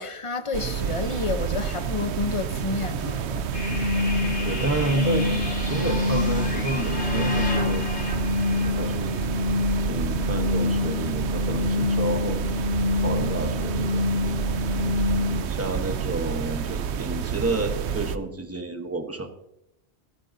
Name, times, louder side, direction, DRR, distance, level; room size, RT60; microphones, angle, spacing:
voice 1, 0.0-3.6 15.4-15.6 16.6-16.7, left 4 dB, 30° left, 0.8 m, -30 dB
sound 1, 0.5-18.2, right 8 dB, 80° right, 0.9 m, -29 dB
sound 2, 3.5-15.4, left 3 dB, 85° left, 2.6 m, -26 dB
voice 2, 4.1-7.8 8.8-9.2 9.8-14.0 15.5-19.3, right 2 dB, 15° right, 1.0 m, -30 dB
24.0 x 8.7 x 2.7 m
omnidirectional pair, 1.1 m